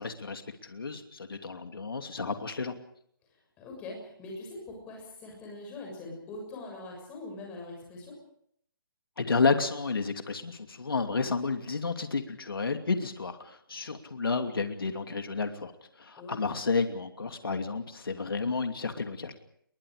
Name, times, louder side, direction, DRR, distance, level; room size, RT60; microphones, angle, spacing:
voice 1, 0.0-2.7 9.2-15.7 16.0-19.3, left 4 dB, 90° left, 6 dB, 2.7 m, -31 dB
voice 2, 3.6-8.2 16.2-16.5, left 2 dB, 10° left, 0 dB, 6.9 m, -42 dB
29.5 x 22.5 x 5.1 m, 0.69 s
hypercardioid pair, 170°, 12 cm